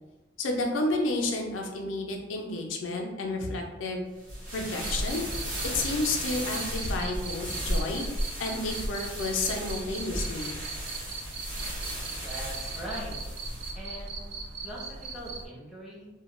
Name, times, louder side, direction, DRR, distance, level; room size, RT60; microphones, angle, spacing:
voice 1, 0.4-4.1 4.5-5.2 5.7-10.5, left 2 dB, 85° left, 1 dB, 0.4 m, -31 dB
sound 1, 4.2-13.7, right 1 dB, 45° right, 0.8 m, -35 dB
Cricket, 4.8-15.5, right 3 dB, 65° right, 0.3 m, -39 dB
voice 2, 12.2-13.2 13.7-14.2 14.6-16.1, equal, ahead, -6 dB, 0.6 m, -41 dB
2.2 x 2.1 x 3.0 m, 1.1 s
head